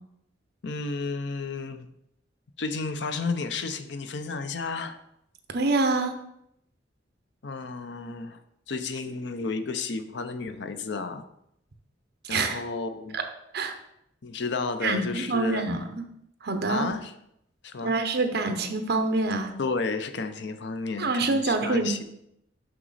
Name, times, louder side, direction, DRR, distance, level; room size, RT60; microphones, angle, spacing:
voice 1, 0.6-1.9 2.6-5.0 7.4-8.4 8.7-11.2 12.3-13.2 14.2-15.7 16.7-17.1 17.6-18.0 19.6-22.0, left 4 dB, 65° left, 9 dB, 0.6 m, -32 dB
voice 2, 5.5-6.1 12.3-12.6 13.5-13.8 14.8-16.0 16.4-16.9 17.8-19.5 21.0-22.0, right 3 dB, 60° right, 6 dB, 0.9 m, -26 dB
6.0 x 6.0 x 4.1 m, 0.78 s
head